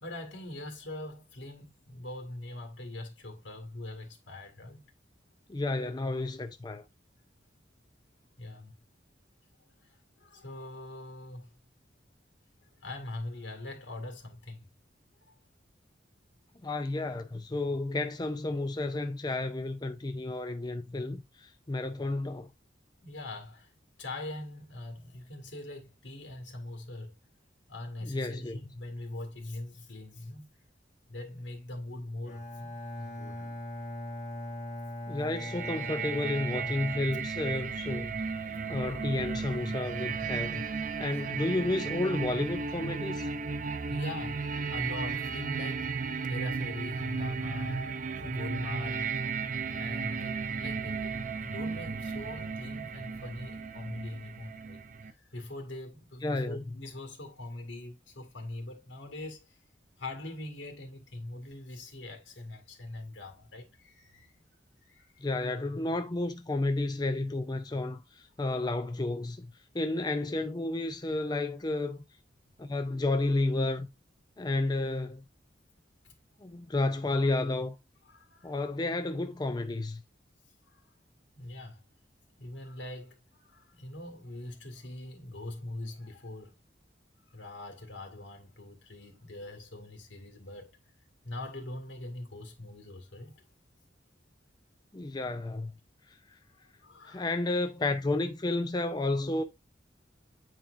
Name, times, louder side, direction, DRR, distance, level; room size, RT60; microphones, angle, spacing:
voice 1, 0.0-4.9 8.4-8.8 9.8-11.5 12.8-14.7 15.3-15.4 23.0-23.7 24.0-27.1 27.7-30.5 31.1-33.4 43.6-45.9 46.3-49.1 49.7-59.6 60.0-64.3 64.8-65.2 76.0-76.2 78.1-78.5 80.6-80.8 81.4-81.8 82.4-86.5 87.3-90.8 91.2-93.5 96.8-97.3, left 1 dB, 85° left, 2.1 m, -42 dB
voice 2, 5.5-6.8 16.6-22.5 28.0-28.6 35.1-38.2 38.5-40.7 41.0-43.3 56.2-56.6 65.2-72.0 72.6-73.9 74.4-75.2 76.4-77.8 78.4-80.0 94.9-95.7 96.1-96.2 97.0-99.4, left 2 dB, 20° left, 0.5 m, -31 dB
Bowed string instrument, 32.2-37.7, left 1 dB, 40° left, 1.5 m, -40 dB
sound 1, 35.3-55.1, right 5 dB, 45° right, 0.6 m, -35 dB
9.0 x 4.5 x 2.6 m
head